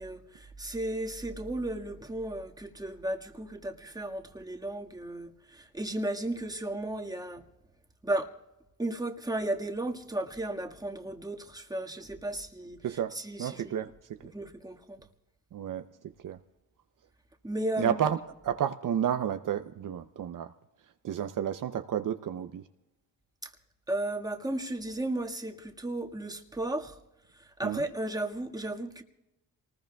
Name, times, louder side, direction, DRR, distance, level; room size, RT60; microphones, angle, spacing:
voice 1, 0.0-7.4 8.0-8.3 8.8-12.8 13.1-13.7 14.3-15.1 17.4-18.0 23.4-23.5 23.9-27.0 27.3-29.0, right 1 dB, 10° right, 1.7 m, -34 dB
voice 2, 12.8-14.3 15.5-15.9 16.2-16.4 17.8-18.2 18.4-20.5 21.0-22.6 27.6-27.8, right 9 dB, 60° right, 0.7 m, -31 dB
27.5 x 20.0 x 2.3 m
cardioid pair, 85°, 35 cm